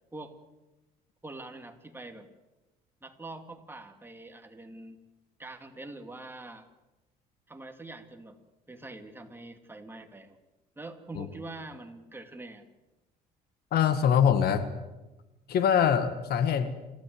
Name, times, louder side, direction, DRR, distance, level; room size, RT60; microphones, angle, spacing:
voice 1, 1.2-2.3 3.0-5.0 5.4-6.7 7.5-8.4 8.7-10.4 10.8-12.7, right 2 dB, 15° right, 5 dB, 2.6 m, -44 dB
voice 2, 13.7-14.7 15.5-16.7, left 8 dB, 70° left, 11 dB, 1.9 m, -23 dB
28.5 x 15.5 x 8.0 m, 1.1 s
cardioid pair, 110°, 17 cm